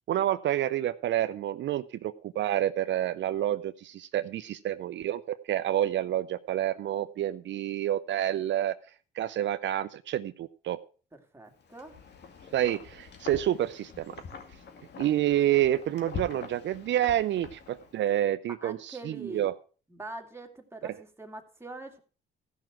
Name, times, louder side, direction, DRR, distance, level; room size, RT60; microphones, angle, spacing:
voice 1, 0.1-8.8 9.1-10.8 12.5-14.2 15.0-19.5 20.8-20.9, right 12 dB, 65° right, 12 dB, 0.6 m, -28 dB
voice 2, 11.3-12.0 18.6-19.5 19.9-22.0, right 2 dB, 10° right, 3 dB, 2.4 m, -43 dB
Wind, 11.6-18.1, left 6 dB, 60° left, 2.3 m, -44 dB
15.0 x 6.0 x 6.1 m, 0.39 s
cardioid pair, 90°, 20 cm